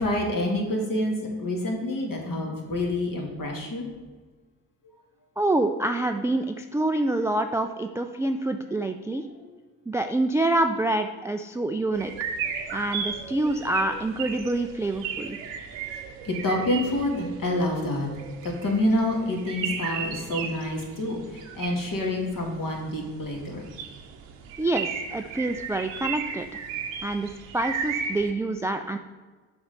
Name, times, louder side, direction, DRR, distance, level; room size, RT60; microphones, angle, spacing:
voice 1, 0.0-3.9 9.4-9.5 15.8-18.1 18.4-23.7, left 1 dB, 45° left, 0 dB, 2.1 m, -28 dB
voice 2, 5.4-9.2 9.9-12.1 12.7-15.4 24.6-26.6 27.0-29.0, right 2 dB, 5° right, 6 dB, 0.3 m, -26 dB
sound 1, 11.9-28.3, right 6 dB, 80° right, 0.8 m, -35 dB
6.9 x 4.3 x 5.2 m, 1.4 s
hypercardioid pair, 40°, 44 cm